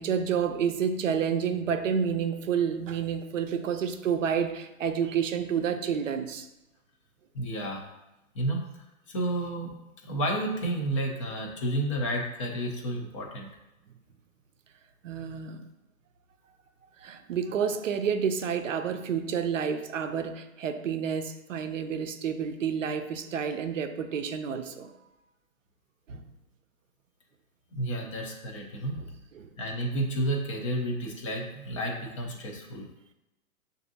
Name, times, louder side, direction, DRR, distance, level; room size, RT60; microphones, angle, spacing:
voice 1, 0.0-6.5 15.0-15.7 17.0-24.9 26.1-26.3 29.3-29.5, right 7 dB, 60° right, 8 dB, 0.5 m, -29 dB
voice 2, 7.3-7.9 8.3-8.6 9.1-9.7 10.0-13.5 27.7-29.0 29.6-32.9, right 1 dB, 25° left, 1 dB, 0.5 m, -31 dB
6.6 x 2.6 x 2.6 m, 0.96 s
figure-of-eight pair, 125°, 43 cm